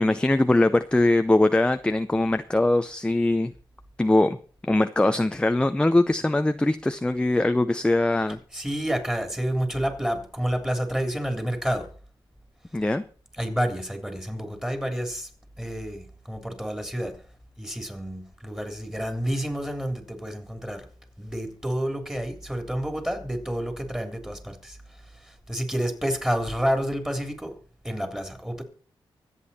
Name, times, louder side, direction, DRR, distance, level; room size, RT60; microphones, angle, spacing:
voice 1, 0.0-3.5 4.0-4.4 4.6-8.4 12.7-13.0, left 2 dB, 10° left, 0.7 m, -21 dB
voice 2, 8.5-11.9 13.4-15.3 15.6-17.2 17.6-20.9 21.2-27.5 27.8-28.6, equal, 5° right, 3.4 m, -29 dB
24.5 x 8.4 x 4.3 m
cardioid pair, 90°, 9 cm